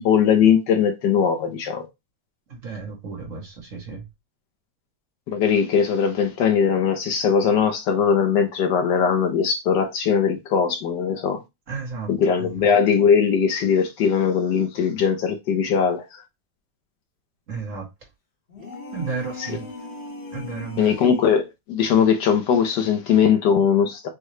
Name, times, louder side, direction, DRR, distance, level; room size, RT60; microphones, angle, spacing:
voice 1, 0.0-1.8 5.3-11.4 12.1-16.0 19.4-19.6 20.8-21.4 21.7-24.1, left 7 dB, 70° left, 1.4 m, -20 dB
voice 2, 2.5-4.0 11.7-12.7 17.5-17.9 18.9-19.7 20.3-20.9, right 5 dB, 50° right, 1.3 m, -33 dB
sound 1, 18.5-21.5, left 2 dB, 40° left, 1.3 m, -38 dB
6.5 x 2.2 x 3.1 m
omnidirectional pair, 2.0 m